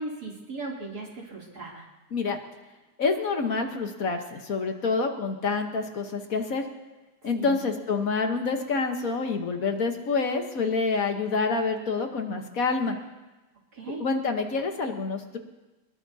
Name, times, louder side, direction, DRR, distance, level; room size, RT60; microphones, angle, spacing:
voice 1, 0.0-1.9 7.3-7.6 13.7-14.0, right 3 dB, 65° right, -3 dB, 3.5 m, -37 dB
voice 2, 3.0-6.7 7.2-12.9 14.0-15.4, left 4 dB, 55° left, 5 dB, 1.6 m, -27 dB
22.5 x 21.0 x 2.8 m, 1.1 s
omnidirectional pair, 1.8 m